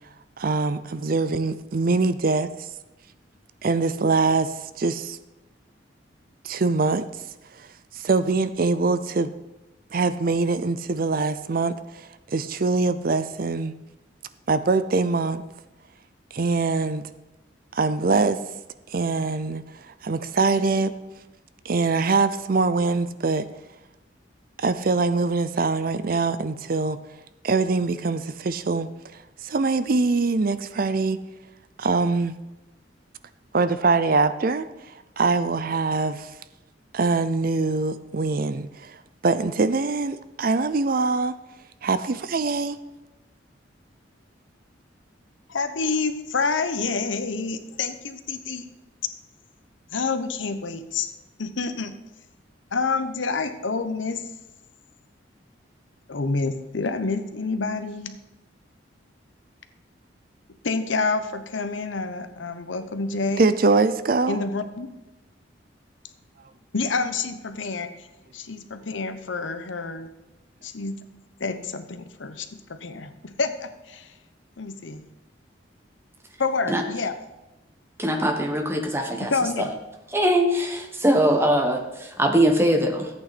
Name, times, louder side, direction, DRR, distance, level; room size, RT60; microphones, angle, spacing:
voice 1, 0.4-2.5 3.6-5.2 6.4-7.0 8.0-9.3 9.9-13.7 14.5-15.4 16.3-17.0 17.7-18.4 18.9-19.6 20.0-20.9 21.6-23.5 24.6-27.0 27.4-28.9 29.4-31.2 31.8-32.3 33.5-34.7 35.2-36.3 36.9-39.0 39.2-41.3 41.8-42.8 63.4-64.4, right 3 dB, 50° right, 13 dB, 0.5 m, -23 dB
voice 2, 45.5-48.7 49.9-51.1 51.4-52.0 52.7-54.2 56.1-58.2 60.6-63.5 64.3-64.9 66.7-67.9 68.3-70.1 70.6-71.0 71.4-74.1 74.6-75.0 76.4-77.1 79.2-79.8, left 4 dB, 85° left, 10 dB, 0.9 m, -28 dB
voice 3, 78.0-79.3 79.6-79.7 80.1-83.1, right 1 dB, 15° right, 4 dB, 1.3 m, -22 dB
14.0 x 8.6 x 4.2 m, 1.0 s
head